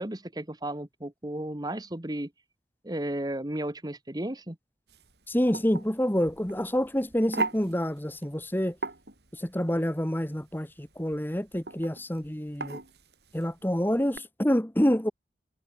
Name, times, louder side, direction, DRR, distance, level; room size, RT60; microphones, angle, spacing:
voice 1, 0.0-2.3 2.8-4.6, right 1 dB, 20° right, 1.2 m, -34 dB
sound 1, 4.9-14.2, right 3 dB, 70° right, 5.5 m, -39 dB
voice 2, 5.3-8.8 9.3-12.8 13.3-15.1, equal, 10° left, 1.4 m, -27 dB
head